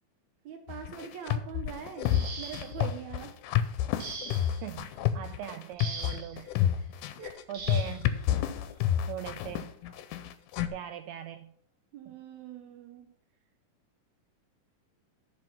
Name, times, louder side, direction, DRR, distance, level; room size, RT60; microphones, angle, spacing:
voice 1, 0.4-2.1 2.4-3.3 6.3-6.5 6.8-6.9 7.2-7.5 11.9-13.1, right 8 dB, 70° right, 4 dB, 2.1 m, -43 dB
sound 1, 0.7-10.7, left 11 dB, 85° left, 2.2 m, -29 dB
sound 2, 2.0-2.9 4.0-4.7 5.8-6.4 7.5-8.0 9.2-9.4 9.9-10.1, right 4 dB, 45° right, 1.6 m, -41 dB
voice 2, 4.6-6.5 7.5-8.1 9.1-9.7 10.7-11.5 12.1-12.2, right 11 dB, 85° right, 8 dB, 1.6 m, -40 dB
11.0 x 5.3 x 5.8 m, 0.65 s
omnidirectional pair, 3.7 m